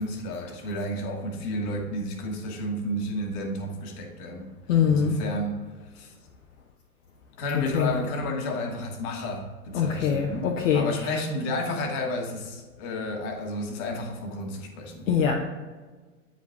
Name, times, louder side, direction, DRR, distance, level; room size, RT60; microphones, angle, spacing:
voice 1, 0.0-4.5 4.9-5.6 5.9-6.1 7.4-15.1, left 1 dB, 35° left, 3 dB, 1.5 m, -32 dB
voice 2, 4.7-5.2 7.5-7.9 9.7-10.9 15.1-15.3, left 7 dB, 55° left, 0 dB, 0.9 m, -23 dB
9.0 x 5.2 x 3.5 m, 1.4 s
figure-of-eight pair, 110°, 47 cm